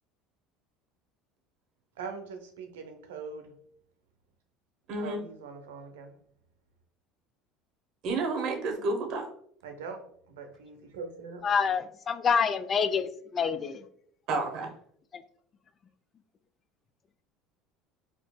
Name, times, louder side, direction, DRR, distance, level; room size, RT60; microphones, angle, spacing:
voice 1, 2.0-3.5 4.9-6.2 9.6-11.4, right 5 dB, 90° right, 0.5 m, -42 dB
voice 2, 4.9-5.2 8.0-9.3 14.3-14.7, right 3 dB, 60° right, 1.0 m, -30 dB
voice 3, 11.4-13.8 15.1-15.2, left 6 dB, 40° left, 0.3 m, -27 dB
4.3 x 2.8 x 2.3 m
hypercardioid pair, 85°, 0 cm